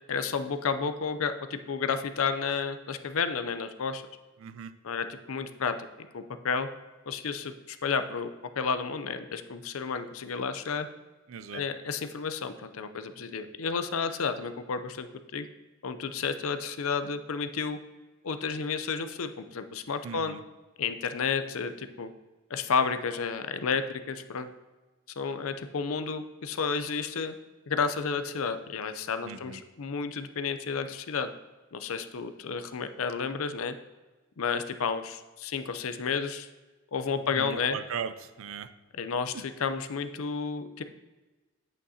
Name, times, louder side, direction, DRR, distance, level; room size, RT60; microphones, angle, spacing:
voice 1, 0.1-4.0 4.8-6.7 7.1-10.9 11.5-15.1 15.3-15.4 15.8-17.8 18.2-20.4 20.8-22.1 22.5-24.5 25.2-27.4 27.7-31.3 31.7-33.7 34.4-36.5 36.9-37.8 39.0-40.8, left 5 dB, 80° left, 10 dB, 0.6 m, -31 dB
voice 2, 4.4-4.7 11.3-11.6 20.0-20.4 29.2-29.6 37.3-38.7 39.3-39.4, right 6 dB, 70° right, 12 dB, 0.5 m, -38 dB
8.8 x 8.3 x 2.8 m, 1.2 s
head